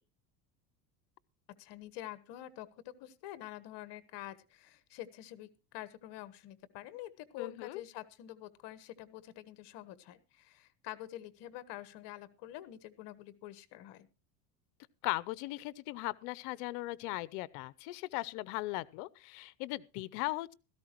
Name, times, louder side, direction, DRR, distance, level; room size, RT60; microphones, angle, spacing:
voice 1, 1.6-14.1, left 13 dB, 60° left, 1.4 m, -47 dB
voice 2, 7.4-7.8 15.0-20.5, left 20 dB, 75° left, 0.8 m, -38 dB
16.5 x 14.0 x 3.0 m
supercardioid pair, 110°, 47 cm